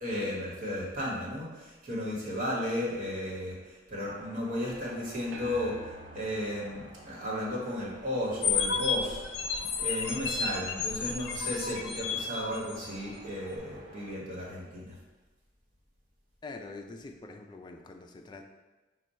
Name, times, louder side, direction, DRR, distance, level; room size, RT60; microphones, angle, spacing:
voice 1, 0.0-9.2 9.8-15.0, left 1 dB, 45° right, -5 dB, 1.3 m, -34 dB
sound 1, 4.0-14.1, right 1 dB, 25° right, 0.7 m, -52 dB
sound 2, 5.3-8.0, equal, 70° right, 0.5 m, -48 dB
sound 3, 8.4-13.0, left 5 dB, 90° left, 0.4 m, -32 dB
voice 2, 16.4-18.4, left 3 dB, 25° left, 4 dB, 0.3 m, -45 dB
5.0 x 2.3 x 4.2 m, 1.2 s
head